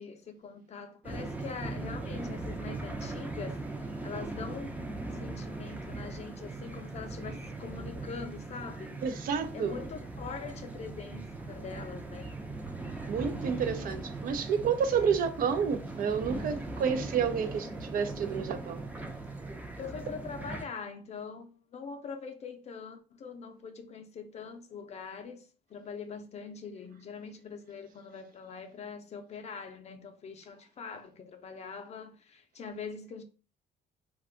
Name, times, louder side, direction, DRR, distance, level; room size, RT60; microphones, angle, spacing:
voice 1, 0.0-9.0 9.5-12.3 13.7-14.0 15.0-15.2 19.8-33.2, left 5 dB, 40° left, 0.5 m, -43 dB
sound 1, 1.0-20.7, right 2 dB, 10° right, 0.5 m, -39 dB
voice 2, 9.0-9.7 13.1-18.8, right 6 dB, 55° right, 0.5 m, -30 dB
2.5 x 2.3 x 3.6 m
cardioid pair, 110°, 17 cm